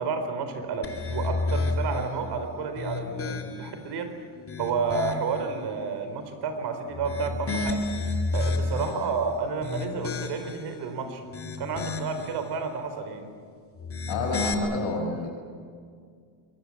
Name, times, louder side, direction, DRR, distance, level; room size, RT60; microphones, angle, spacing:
voice 1, 0.0-4.1 4.6-7.9 8.3-11.2 11.6-13.3, right 5 dB, 55° right, 8 dB, 4.2 m, -31 dB
sound 1, 0.8-2.1 2.7-3.8 4.3-5.4 6.9-9.0 9.5-10.7 11.2-12.3 13.8-14.5, left 3 dB, 30° left, 2.3 m, -31 dB
voice 2, 14.1-15.3, left 4 dB, 55° left, -3 dB, 6.0 m, -30 dB
23.0 x 22.5 x 9.7 m, 2.1 s
cardioid pair, 155°, 48 cm